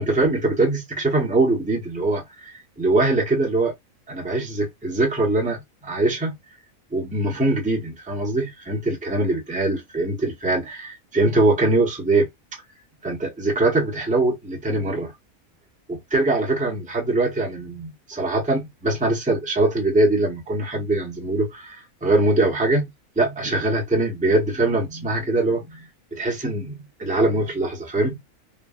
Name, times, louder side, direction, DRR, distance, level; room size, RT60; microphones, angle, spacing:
voice 1, 0.0-3.7 4.1-6.3 6.9-12.3 13.0-15.1 15.9-22.9 23.2-28.2, right 2 dB, 5° right, 0.7 m, -22 dB
3.3 x 2.3 x 2.2 m
omnidirectional pair, 1.5 m